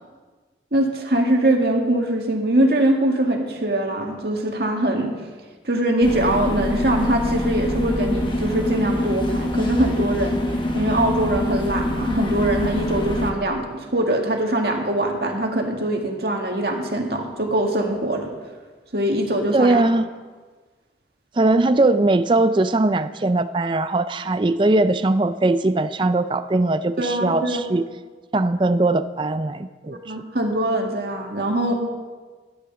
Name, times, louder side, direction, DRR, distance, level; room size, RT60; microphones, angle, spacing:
voice 1, 0.7-5.1 5.6-10.4 10.7-18.3 18.9-19.8 27.0-27.6 29.8-31.7, right 1 dB, 60° right, 1 dB, 2.0 m, -22 dB
sound 1, 6.0-13.3, left 1 dB, 25° left, 1.4 m, -24 dB
voice 2, 19.5-20.0 21.4-27.8 28.3-30.0, right 2 dB, 25° right, 11 dB, 0.4 m, -20 dB
14.0 x 11.5 x 6.9 m, 1.4 s
head